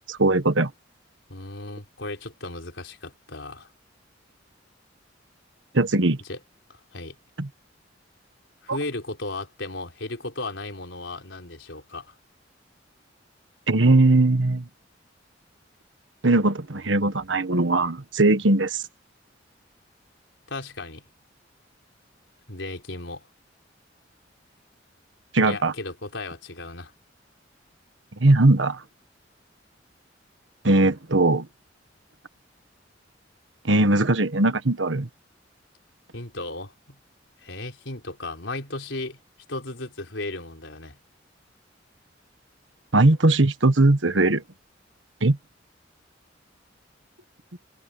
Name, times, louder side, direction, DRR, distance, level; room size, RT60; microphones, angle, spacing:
voice 1, 0.1-0.7 5.7-6.2 7.4-7.5 8.7-8.8 13.7-14.7 16.2-18.8 25.3-25.7 28.2-28.8 30.6-31.5 33.6-35.1 42.9-44.4 45.2-45.4, right 2 dB, 85° right, 1.5 m, -19 dB
voice 2, 1.3-3.7 6.3-6.4 6.7-7.2 8.6-12.1 20.5-21.0 22.5-23.3 25.4-26.9 36.1-37.0 37.4-39.2 39.5-41.0, left 2 dB, 80° left, 4.2 m, -35 dB
head